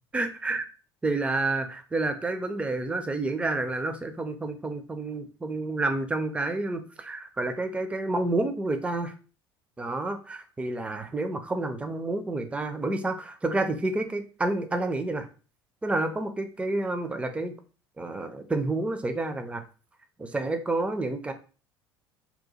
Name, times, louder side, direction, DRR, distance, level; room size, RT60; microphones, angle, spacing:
voice 1, 0.1-0.7 1.0-9.1 9.8-15.3 15.8-17.5 18.0-19.6 20.2-21.3, right 2 dB, 10° right, 8 dB, 0.4 m, -29 dB
2.8 x 2.2 x 4.1 m, 0.36 s
figure-of-eight pair, 65°, 14 cm